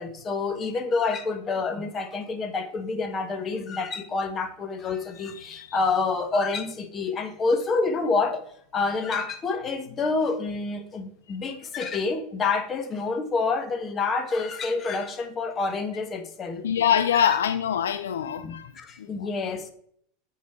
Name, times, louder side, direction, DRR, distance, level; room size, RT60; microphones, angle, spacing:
voice 1, 0.0-8.4 8.7-16.6 17.2-17.3 18.4-19.7, left 4 dB, 30° left, 7 dB, 1.2 m, -28 dB
voice 2, 5.4-5.7 16.6-18.7 19.0-19.3, left 8 dB, 85° left, 10 dB, 0.4 m, -24 dB
8.2 x 4.1 x 4.6 m, 0.66 s
hypercardioid pair, 95°, 0 cm